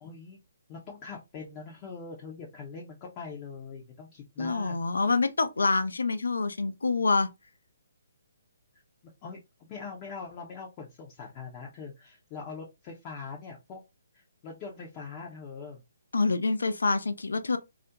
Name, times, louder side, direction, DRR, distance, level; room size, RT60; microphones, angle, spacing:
voice 1, 0.0-0.4 0.7-4.8 9.2-9.4 9.7-13.8 14.1-15.8, left 5 dB, 25° left, 0.6 m, -42 dB
voice 2, 4.4-7.3 16.1-17.6, left 3 dB, 70° left, 0.3 m, -26 dB
2.4 x 2.0 x 2.8 m
figure-of-eight pair, 135°, 0 cm